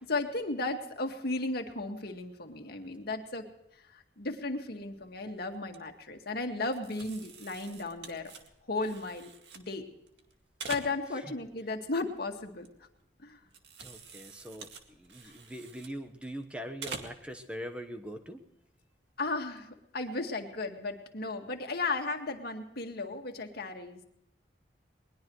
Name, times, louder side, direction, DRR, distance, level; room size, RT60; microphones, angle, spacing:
voice 1, 0.0-3.5 3.9-8.3 8.6-9.9 10.7-12.7 13.2-13.4 19.2-24.0, left 3 dB, 60° left, 4 dB, 2.0 m, -35 dB
sound 1, 4.8-5.1 5.4-5.8 6.7-9.7 10.0-11.3 11.7-13.1 13.4-16.4 16.8-17.3 17.7-17.8 19.3-19.6, right 5 dB, 75° right, 2.1 m, -46 dB
voice 2, 13.8-18.4, equal, 5° right, 6 dB, 1.1 m, -42 dB
21.5 x 20.5 x 3.2 m, 0.81 s
head